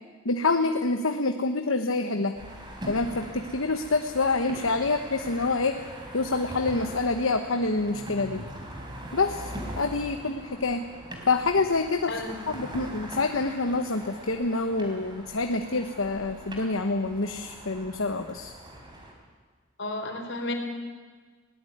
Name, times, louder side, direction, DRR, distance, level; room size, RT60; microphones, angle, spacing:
voice 1, 0.2-2.3 2.9-5.8 6.1-8.4 9.1-9.5 9.8-10.9 11.3-12.1 12.5-18.5, left 3 dB, 75° left, 6 dB, 1.1 m, -27 dB
sound 1, 2.3-19.1, right 1 dB, 25° right, 4.4 m, -41 dB
voice 2, 12.1-12.5 19.8-20.5, left 2 dB, 60° left, 4 dB, 4.1 m, -33 dB
21.0 x 18.5 x 9.4 m, 1.5 s
head